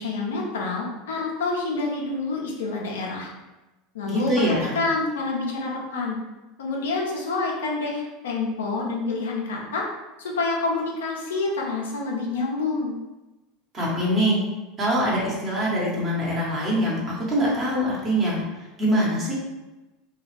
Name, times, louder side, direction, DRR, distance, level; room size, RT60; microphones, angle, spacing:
voice 1, 0.0-3.3 3.9-6.2 6.6-9.8 10.2-13.0, left 3 dB, 90° left, -2 dB, 0.6 m, -27 dB
voice 2, 4.1-4.7 13.7-14.4 14.8-18.4 18.8-19.4, equal, 35° right, -5 dB, 1.0 m, -23 dB
2.4 x 2.4 x 3.2 m, 1.1 s
hypercardioid pair, 100°, 0 cm